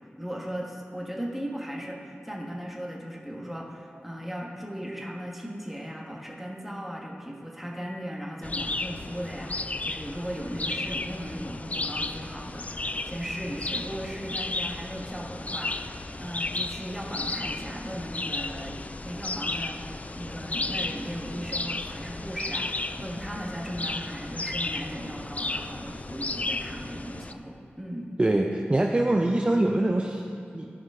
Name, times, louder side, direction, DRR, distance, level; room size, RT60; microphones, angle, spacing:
voice 1, 0.2-28.1, equal, 5° right, -2 dB, 1.5 m, -37 dB
sound 1, 8.4-27.3, left 2 dB, 35° left, 0.3 m, -34 dB
voice 2, 28.2-30.7, right 1 dB, 30° right, 1 dB, 0.5 m, -24 dB
15.5 x 5.3 x 3.7 m, 2.6 s
wide cardioid pair, 70°, 4 cm